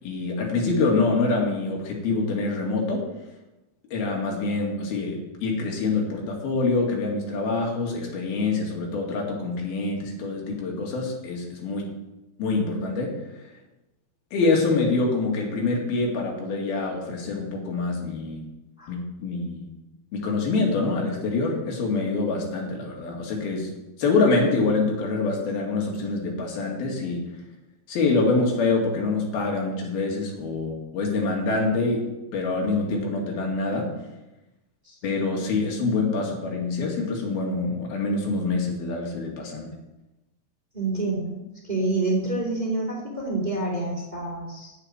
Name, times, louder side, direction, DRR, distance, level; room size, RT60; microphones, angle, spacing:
voice 1, 0.0-3.0 3.9-11.9 12.4-13.2 14.3-18.4 18.9-19.7 20.1-23.7 24.0-27.2 27.9-33.9 35.0-39.7, left 3 dB, 90° left, 0 dB, 4.2 m, -25 dB
voice 2, 40.7-44.8, right 2 dB, 15° right, -1 dB, 2.1 m, -28 dB
9.0 x 8.0 x 9.4 m, 0.99 s
omnidirectional pair, 4.2 m